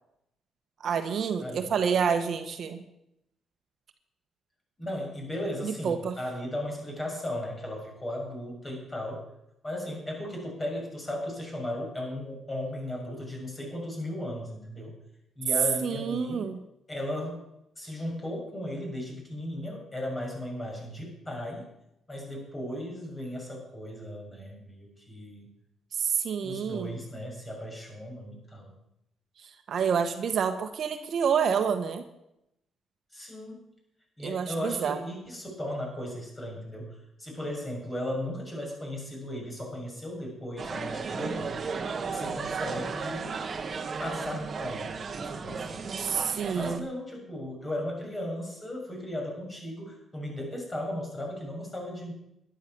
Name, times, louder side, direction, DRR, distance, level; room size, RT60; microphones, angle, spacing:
voice 1, 0.8-2.8 5.6-6.1 15.8-16.6 26.0-27.0 29.7-32.0 34.2-35.0 46.0-46.8, right 7 dB, 60° right, 7 dB, 1.4 m, -28 dB
voice 2, 1.4-1.7 4.8-9.2 9.6-14.9 15.4-16.5 16.9-17.4 17.8-21.7 22.1-25.5 26.4-28.7 33.1-33.6 34.2-41.6 42.1-43.3 44.0-45.9 46.5-52.1, left 1 dB, 20° left, 0 dB, 6.9 m, -36 dB
sound 1, 40.6-46.8, right 5 dB, 45° right, 1.5 m, -34 dB
11.5 x 11.5 x 7.0 m, 0.82 s
cardioid pair, 90°, 0 cm